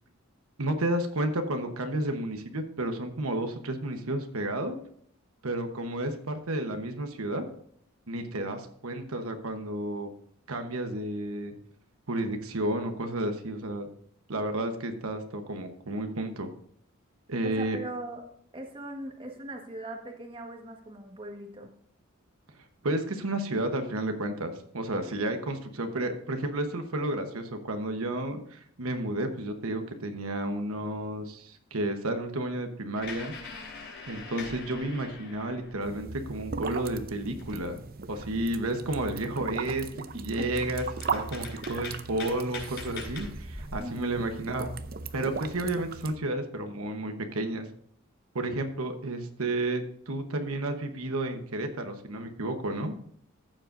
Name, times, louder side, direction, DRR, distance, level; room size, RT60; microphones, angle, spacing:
voice 1, 0.6-4.8 5.4-7.5 8.1-10.1 10.5-11.5 12.1-13.9 14.3-16.5 17.3-17.8 22.8-33.3 34.1-37.8 38.1-39.9 40.1-40.8 41.1-44.7 45.1-47.6 48.3-52.9, right 1 dB, 75° right, 6 dB, 1.1 m, -31 dB
voice 2, 17.4-18.2 18.5-21.7 40.1-40.4 43.8-44.0, right 1 dB, 25° right, 2 dB, 1.4 m, -40 dB
sound 1, 32.9-36.0 36.4-37.9 38.3-38.4 38.8-39.3 39.9-40.0 40.4-43.8, left 4 dB, 55° left, 4.6 m, -43 dB
sound 2, 35.8-46.2, right 4 dB, 45° right, 0.6 m, -38 dB
14.5 x 7.5 x 2.6 m, 0.67 s
head